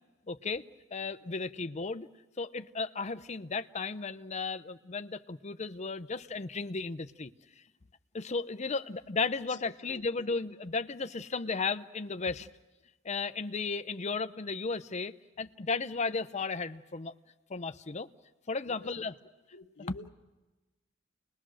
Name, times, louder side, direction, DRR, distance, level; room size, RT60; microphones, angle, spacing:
voice 1, 0.3-0.7 0.9-2.1 2.4-7.3 8.1-12.5 13.0-17.1 17.5-18.1 18.5-19.1 19.9-20.0, left 4 dB, 35° left, 11 dB, 0.7 m, -34 dB
voice 2, 9.5-10.0 18.6-18.9 19.5-20.1, left 3 dB, 65° left, 7 dB, 1.1 m, -50 dB
29.5 x 21.0 x 6.3 m, 1.1 s
head